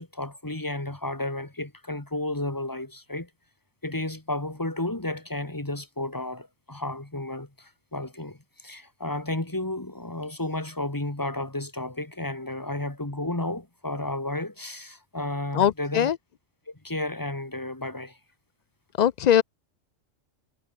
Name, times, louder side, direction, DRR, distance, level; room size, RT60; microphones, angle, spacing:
voice 1, 0.0-3.3 3.8-8.4 8.6-16.1 16.7-18.2, left 1 dB, 15° left, 2.1 m, -32 dB
voice 2, 15.5-16.2 19.0-19.4, left 9 dB, 75° left, 0.3 m, -21 dB
omnidirectional pair, 1.3 m